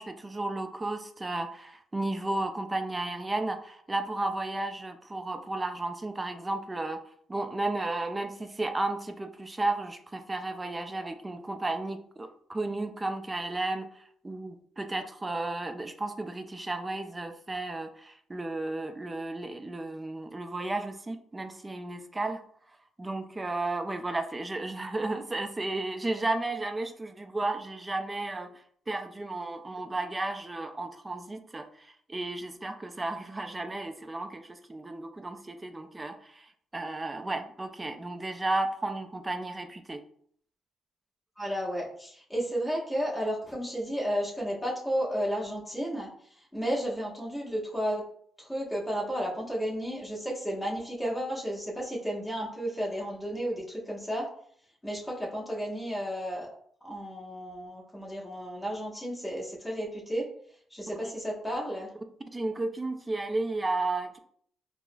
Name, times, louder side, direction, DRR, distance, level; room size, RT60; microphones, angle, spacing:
voice 1, 0.0-7.0 7.3-22.4 23.0-28.5 28.9-36.5 36.7-40.0 61.0-61.1 62.3-64.2, right 2 dB, 20° right, 7 dB, 0.3 m, -33 dB
voice 2, 41.4-46.1 46.5-48.1 48.4-54.3 54.8-56.5 56.8-60.3 60.7-61.9, equal, 10° left, -5 dB, 1.3 m, -32 dB
4.6 x 2.0 x 2.2 m, 0.62 s
cardioid pair, 90°, 0 cm